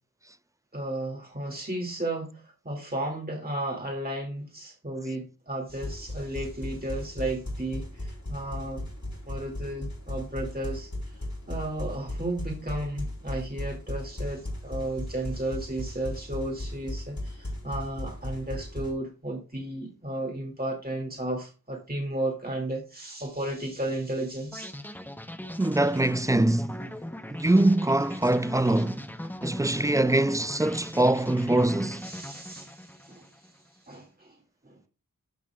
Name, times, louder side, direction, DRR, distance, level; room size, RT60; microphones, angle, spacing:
voice 1, 0.7-8.8 9.3-10.9 11.5-24.7 32.0-33.3 33.9-34.4 34.7-34.8, right 1 dB, 25° right, 2.2 m, -34 dB
sound 1, 5.7-18.9, left 1 dB, 55° left, 3.8 m, -36 dB
sound 2, 24.5-33.6, left 1 dB, 5° left, 0.7 m, -40 dB
voice 2, 25.6-26.9 27.3-29.0 29.4-32.1, right 1 dB, 10° right, 0.3 m, -23 dB
13.5 x 5.8 x 2.3 m
wide cardioid pair, 45°, 34 cm